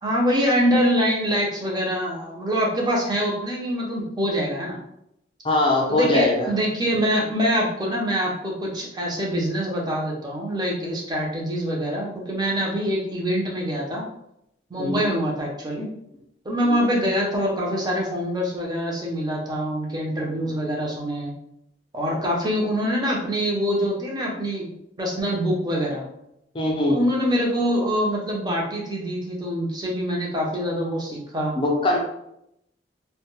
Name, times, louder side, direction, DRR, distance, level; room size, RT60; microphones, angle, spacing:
voice 1, 0.0-4.8 5.9-14.0 14.7-15.9 16.4-21.3 21.9-26.1 26.9-31.5, equal, 25° right, -3 dB, 0.6 m, -24 dB
voice 2, 5.4-6.5 14.8-15.1 16.6-16.9 26.5-27.0 31.6-32.0, left 2 dB, 30° left, -1 dB, 0.5 m, -22 dB
2.1 x 2.1 x 3.0 m, 0.78 s
head